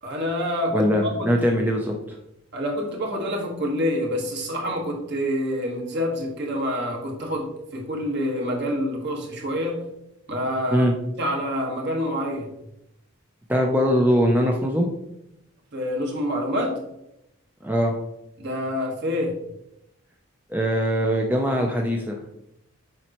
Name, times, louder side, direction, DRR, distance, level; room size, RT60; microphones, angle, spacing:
voice 1, 0.0-1.3 2.5-9.8 10.3-10.9 11.2-12.5 15.7-16.8 18.4-19.4, equal, 55° right, 0 dB, 1.6 m, -27 dB
voice 2, 0.7-1.9 10.7-10.9 13.5-14.9 17.6-18.0 20.5-22.2, equal, 10° right, 1 dB, 0.5 m, -21 dB
7.3 x 5.3 x 3.0 m, 0.82 s
head